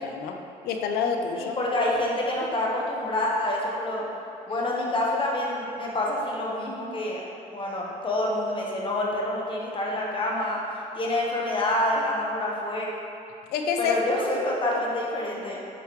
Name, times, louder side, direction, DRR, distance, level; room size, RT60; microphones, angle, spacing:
voice 1, 0.0-1.5 13.5-14.0, left 6 dB, 90° left, 4 dB, 0.6 m, -28 dB
voice 2, 1.3-4.0 4.5-7.2 7.5-10.6 10.9-12.9 13.8-15.6, left 1 dB, 30° left, -3 dB, 1.3 m, -27 dB
7.7 x 4.9 x 3.2 m, 2.5 s
cardioid pair, 100°, 16 cm